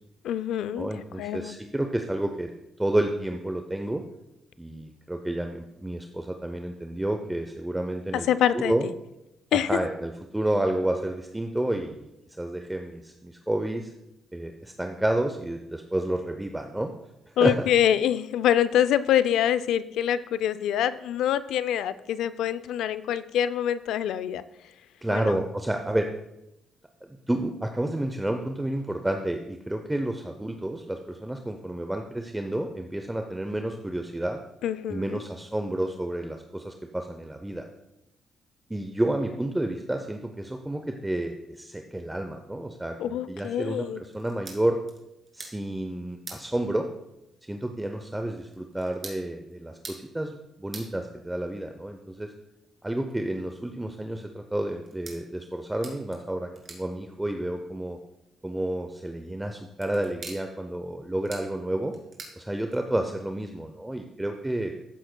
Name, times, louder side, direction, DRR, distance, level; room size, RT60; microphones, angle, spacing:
voice 1, 0.2-1.6 8.3-8.7 9.5-9.8 17.4-24.4 25.1-25.3 34.6-35.2 43.0-44.0, left 10 dB, 80° left, 14 dB, 0.4 m, -25 dB
voice 2, 0.8-2.5 2.8-4.0 4.6-8.3 8.5-8.9 9.5-12.1 12.4-13.9 14.3-16.9 17.4-17.7 25.0-26.1 27.1-34.4 34.9-37.6 38.7-44.8 45.3-46.9 47.5-52.3 52.8-58.0 58.4-61.9 62.4-64.7, right 1 dB, 10° right, 5 dB, 0.6 m, -30 dB
sound 1, 44.1-63.1, right 3 dB, 40° right, 2.5 m, -49 dB
14.0 x 7.6 x 2.2 m, 0.88 s
cardioid pair, 90°, 0 cm